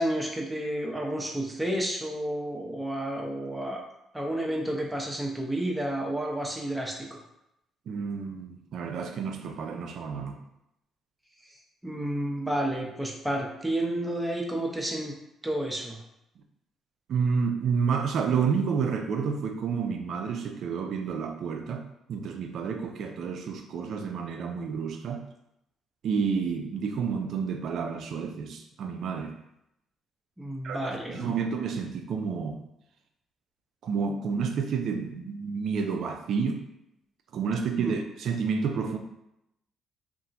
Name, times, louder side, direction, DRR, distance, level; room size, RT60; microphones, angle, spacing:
voice 1, 0.0-3.8 4.1-7.2 11.5-11.6 11.8-15.1 15.4-16.0 30.4-31.4 37.8-38.0, right 1 dB, 10° right, -1 dB, 0.7 m, -31 dB
voice 2, 7.9-10.4 17.1-21.8 22.1-25.2 26.0-29.3 30.6-32.6 33.8-36.6 37.3-39.0, right 6 dB, 65° right, 5 dB, 0.3 m, -30 dB
2.7 x 2.4 x 2.5 m, 0.82 s
hypercardioid pair, 55°, 0 cm